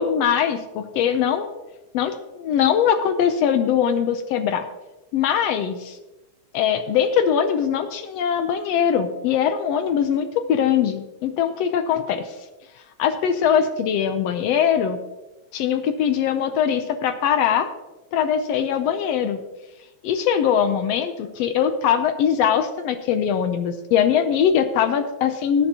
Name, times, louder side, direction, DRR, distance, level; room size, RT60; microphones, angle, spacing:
voice 1, 0.0-1.5 1.9-4.7 5.1-6.0 6.5-12.3 13.0-15.0 15.5-17.7 18.1-19.4 20.0-25.7, left 8 dB, 75° left, 9 dB, 1.5 m, -21 dB
16.5 x 9.8 x 2.8 m, 1.1 s
omnidirectional pair, 3.4 m